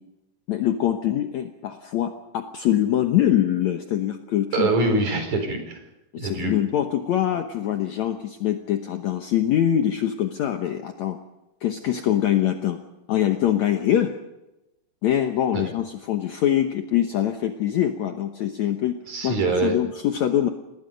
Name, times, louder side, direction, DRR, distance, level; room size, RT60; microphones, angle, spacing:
voice 1, 0.5-4.7 6.1-11.2 11.6-12.8 13.1-14.1 15.0-19.0 19.2-20.5, left 11 dB, 65° left, 5 dB, 2.1 m, -23 dB
voice 2, 4.5-5.8 6.2-6.5 15.5-15.6 19.1-19.8, right 3 dB, 55° right, 5 dB, 5.9 m, -24 dB
29.0 x 20.0 x 5.3 m, 0.96 s
omnidirectional pair, 4.0 m